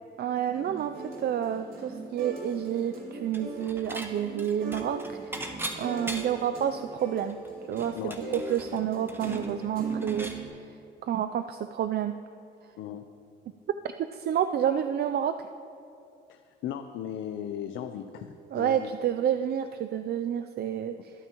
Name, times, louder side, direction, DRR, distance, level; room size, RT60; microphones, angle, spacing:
voice 1, 0.2-5.3 5.8-7.4 7.7-10.3 11.0-12.2 14.1-15.5 18.5-21.1, right 9 dB, 55° right, 9 dB, 0.4 m, -29 dB
sound 1, 0.5-10.5, right 3 dB, 85° right, 3.1 m, -38 dB
Dishes pots and pans / Chink clink, 3.3-4.1 4.4-6.5 6.9-7.0 7.3-10.4, right 1 dB, 10° right, 1.1 m, -39 dB
voice 2, 16.3-18.9, left 9 dB, 80° left, 7 dB, 0.6 m, -37 dB
24.0 x 9.1 x 3.0 m, 2.6 s
cardioid pair, 90°, 20 cm